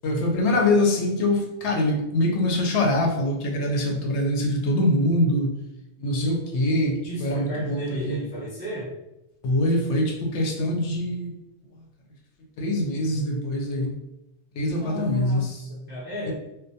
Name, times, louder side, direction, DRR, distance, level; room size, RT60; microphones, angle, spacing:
voice 1, 0.0-5.6 6.0-8.2 9.4-11.3 12.6-13.9 14.6-15.5 16.3-16.4, left 1 dB, 75° left, 1 dB, 0.8 m, -24 dB
voice 2, 7.0-8.9 14.7-16.3, left 1 dB, 15° right, -8 dB, 0.4 m, -33 dB
2.2 x 2.1 x 2.6 m, 0.95 s
omnidirectional pair, 1.2 m